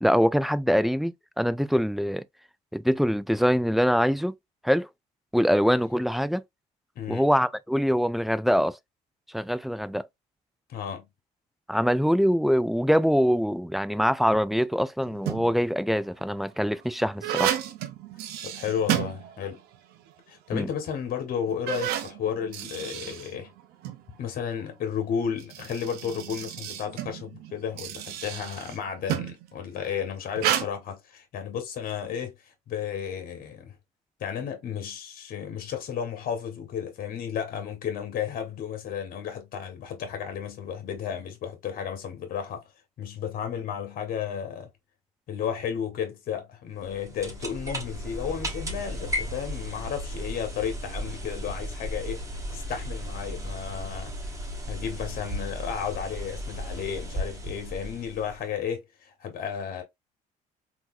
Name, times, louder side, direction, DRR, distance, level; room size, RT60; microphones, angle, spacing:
voice 1, 0.0-2.2 2.7-4.3 4.6-4.9 5.3-6.4 7.1-8.8 9.3-10.1 11.7-17.5 20.5-20.7, equal, ahead, 0.3 m, -24 dB
voice 2, 6.9-7.3 10.7-11.1 18.4-19.6 20.3-23.5 24.2-33.8 34.2-42.7 43.0-44.7 45.3-52.2 52.5-54.2 54.7-59.8, left 8 dB, 60° left, 1.3 m, -33 dB
sound 1, 15.0-15.7 16.3-19.8 20.1-20.2 20.9-21.0 21.5-24.0 25.2-29.5 30.3-30.7, right 11 dB, 75° right, 0.6 m, -32 dB
sound 2, 46.8-58.6, equal, 20° right, 1.4 m, -35 dB
3.7 x 2.8 x 2.5 m
supercardioid pair, 75°, 16 cm